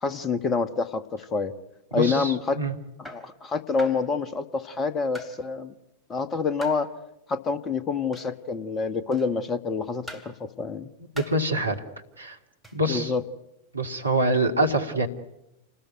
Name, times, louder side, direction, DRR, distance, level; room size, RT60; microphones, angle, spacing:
voice 1, 0.0-1.5 1.9-2.6 3.0-5.7 6.1-6.9 7.3-10.9 12.9-13.2, left 4 dB, 20° left, 12 dB, 1.5 m, -27 dB
voice 2, 1.9-2.7 11.3-11.8 12.2-12.4 12.7-13.1 13.7-15.1, right 1 dB, 80° right, 4 dB, 2.3 m, -25 dB
sound 1, 2.0-2.2 3.0-3.3 3.8-4.1 5.1-5.4 6.6-6.9 8.1-8.4 9.1-9.4 10.1-10.4 11.1-11.4 12.6-12.8, left 1 dB, 5° left, 3.2 m, -42 dB
28.5 x 19.5 x 9.4 m, 0.90 s
figure-of-eight pair, 90°, 0 cm